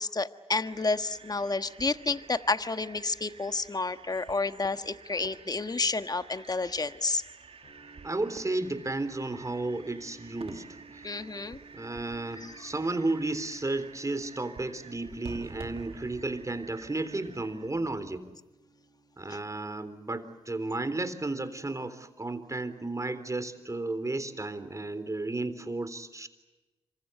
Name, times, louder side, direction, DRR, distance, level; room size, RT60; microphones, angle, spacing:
voice 1, 0.0-7.2 11.0-11.6 12.4-12.6 19.3-19.4, left 3 dB, 35° left, 10 dB, 1.4 m, -30 dB
sound 1, 0.6-18.3, right 5 dB, 60° right, 2.3 m, -50 dB
sound 2, 7.6-23.6, right 3 dB, 70° left, 6.5 m, -58 dB
voice 2, 8.0-11.3 11.7-18.3 19.2-26.3, right 2 dB, 30° right, 11 dB, 3.7 m, -33 dB
27.0 x 25.0 x 7.9 m, 1.1 s
cardioid pair, 45°, 11 cm